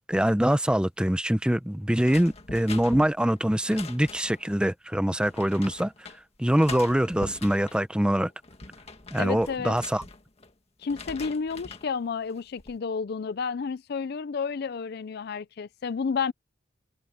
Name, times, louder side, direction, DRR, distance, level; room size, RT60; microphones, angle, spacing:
voice 1, 0.1-5.9 6.4-8.3 9.1-10.0, equal, 5° right, 0.7 m, -24 dB
sound 1, 2.0-4.5 5.2-6.2 6.6-7.8 8.3-10.5 10.8-11.9 12.3-12.8, left 3 dB, 35° left, 1.8 m, -42 dB
voice 2, 9.2-9.8 10.8-16.3, left 5 dB, 60° left, 0.4 m, -31 dB
head